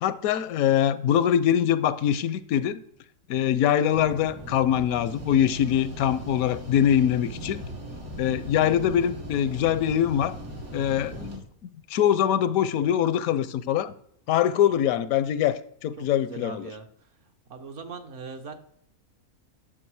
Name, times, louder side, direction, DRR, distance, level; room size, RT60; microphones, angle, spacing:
voice 1, 0.0-2.8 3.3-7.6 8.2-10.4 10.7-11.4 11.9-13.9 14.3-16.7, left 10 dB, 85° left, 1.0 m, -23 dB
sound 1, 3.9-11.4, equal, 85° right, 2.2 m, -39 dB
voice 2, 16.0-17.1 17.5-18.5, right 5 dB, 60° right, 1.2 m, -40 dB
9.9 x 6.0 x 4.7 m
omnidirectional pair, 1.5 m